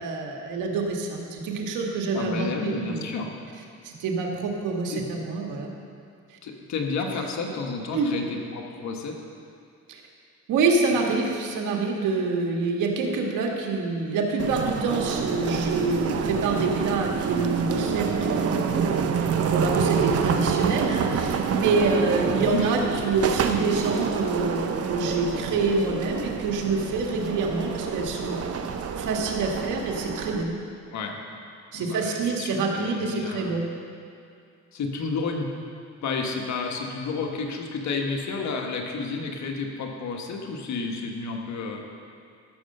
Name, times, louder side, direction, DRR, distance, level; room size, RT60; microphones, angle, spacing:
voice 1, 0.0-3.1 3.8-5.7 6.3-6.4 7.9-8.1 9.9-10.0 10.5-28.4 29.0-30.5 31.7-33.7, right 3 dB, 90° right, 1 dB, 1.7 m, -26 dB
voice 2, 2.1-3.3 4.9-5.0 6.4-9.1 10.9-11.0 22.4-22.7 30.9-31.2 31.7-33.6 34.7-35.5 36.0-41.8, left 4 dB, 65° left, 2 dB, 1.4 m, -31 dB
sound 1, 14.4-30.4, right 6 dB, 50° right, 0.9 m, -27 dB
15.0 x 6.4 x 6.7 m, 2.4 s
cardioid pair, 90°, 30 cm